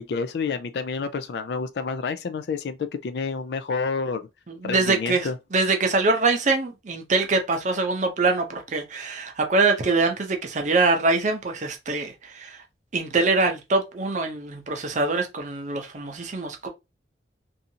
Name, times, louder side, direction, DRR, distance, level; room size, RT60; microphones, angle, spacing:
voice 1, 0.0-4.3 4.6-5.3, left 4 dB, 60° left, 0.3 m, -29 dB
voice 2, 4.5-12.6 12.9-16.7, right 3 dB, 40° right, 0.6 m, -24 dB
2.7 x 2.5 x 2.6 m
head